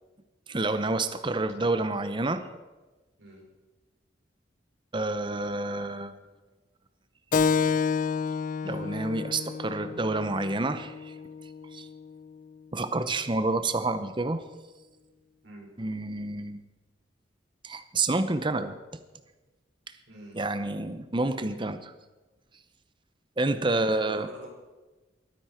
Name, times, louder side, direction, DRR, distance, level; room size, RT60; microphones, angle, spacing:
voice 1, 0.5-2.4 4.9-6.1 8.6-11.1 11.7-11.9 12.7-14.4 15.8-16.6 17.6-18.8 20.3-21.9 23.4-24.3, right 2 dB, 25° right, 10 dB, 0.7 m, -28 dB
Keyboard (musical), 7.3-12.4, left 5 dB, 45° left, 0.4 m, -30 dB
voice 2, 20.1-20.4 23.7-24.5, right 1 dB, 75° right, -2 dB, 5.2 m, -45 dB
21.5 x 9.6 x 4.5 m, 1.2 s
head